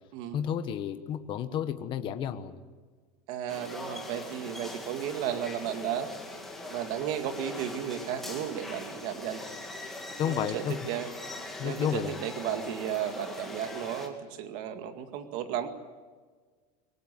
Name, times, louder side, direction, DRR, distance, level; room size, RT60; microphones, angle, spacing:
voice 1, 0.3-2.6 10.2-10.8 11.6-12.2, left 9 dB, 25° left, 8 dB, 1.2 m, -31 dB
voice 2, 3.3-6.1 6.7-9.4 10.2-11.1 11.6-15.7, right 9 dB, 40° right, 7 dB, 2.2 m, -34 dB
sound 1, 3.5-14.1, left 2 dB, ahead, 2.4 m, -42 dB
23.5 x 18.0 x 9.8 m, 1.5 s
supercardioid pair, 180°, 20 cm